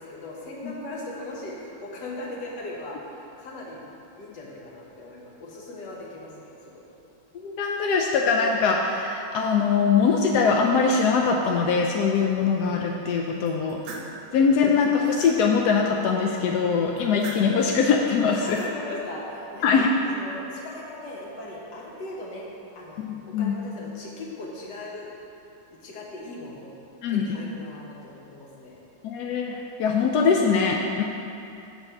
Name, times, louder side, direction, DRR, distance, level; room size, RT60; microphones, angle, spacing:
voice 1, 0.0-3.8 4.2-6.9 13.5-14.7 18.3-19.7 20.0-22.5 22.7-25.1 25.8-26.7 27.1-28.8, left 2 dB, 60° left, -3 dB, 1.6 m, -39 dB
voice 2, 7.3-13.8 14.3-18.6 19.6-19.9 23.0-23.5 27.0-27.2 29.0-31.0, left 5 dB, 80° left, 1 dB, 0.9 m, -22 dB
sound 1, 13.5-14.2 14.7-15.4 17.0-17.7 18.2-18.7, right 3 dB, 60° right, 1.3 m, -42 dB
7.1 x 4.3 x 6.5 m, 2.7 s
omnidirectional pair, 2.2 m